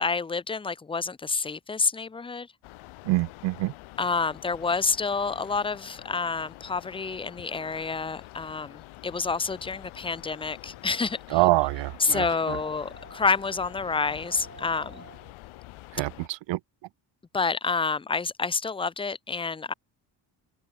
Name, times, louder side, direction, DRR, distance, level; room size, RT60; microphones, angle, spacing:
voice 1, 0.0-2.5 4.0-11.4 12.0-15.1 17.3-19.7, left 4 dB, 10° left, 0.4 m, -28 dB
sound 1, 2.6-16.3, left 19 dB, 85° left, 2.8 m, -47 dB
voice 2, 3.0-3.7 11.3-12.6 15.9-16.6, right 18 dB, 65° right, 0.6 m, -25 dB
sound 2, 10.1-15.3, right 5 dB, 35° right, 6.2 m, -53 dB
supercardioid pair, 70°, 48 cm